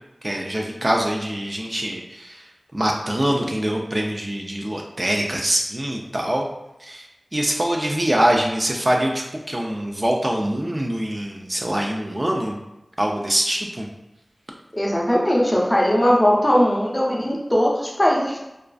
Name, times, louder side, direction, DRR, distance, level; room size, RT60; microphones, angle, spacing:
voice 1, 0.2-2.5 2.7-6.5 6.8-7.1 7.3-12.6 13.0-13.9, right 1 dB, 40° right, 0 dB, 0.3 m, -24 dB
voice 2, 14.7-18.4, equal, 25° left, -3 dB, 0.5 m, -19 dB
2.4 x 2.3 x 2.3 m, 0.95 s
wide cardioid pair, 50°, 0 cm